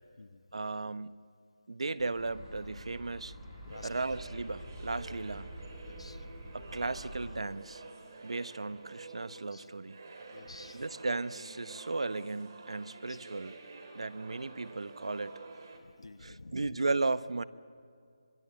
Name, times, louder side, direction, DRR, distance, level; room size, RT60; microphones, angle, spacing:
voice 1, 0.5-1.2 1.7-3.3 3.8-5.5 6.5-7.8 8.2-10.0 10.7-13.6 13.9-15.3 16.2-17.4, right 3 dB, 80° right, 15 dB, 1.0 m, -35 dB
sound 1, 2.0-7.3, equal, 5° right, 4.1 m, -47 dB
voice 2, 3.6-4.1 5.8-6.3 8.7-8.8 9.5-9.7 10.3-10.8 13.1-13.2 15.8-16.7, left 3 dB, 80° left, 12 dB, 1.2 m, -51 dB
sound 2, 3.7-15.8, right 3 dB, 40° right, 2.8 m, -50 dB
26.5 x 21.0 x 7.9 m, 2.3 s
figure-of-eight pair, 170°, 3 cm